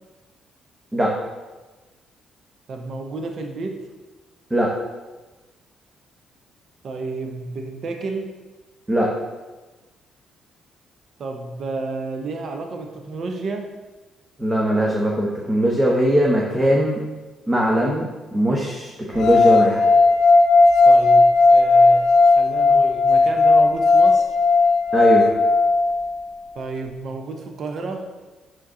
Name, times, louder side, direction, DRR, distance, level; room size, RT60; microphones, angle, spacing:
voice 1, 2.7-3.8 6.8-8.3 11.2-13.7 20.9-24.3 26.5-28.1, right 3 dB, 60° right, 4 dB, 0.7 m, -31 dB
voice 2, 14.4-17.0 17.5-18.9 19.1-19.9 24.9-25.3, equal, 15° right, -2 dB, 0.9 m, -20 dB
sound 1, 19.2-26.3, left 3 dB, 85° left, 0.4 m, -15 dB
6.1 x 4.7 x 3.7 m, 1.2 s
cardioid pair, 90°, 0 cm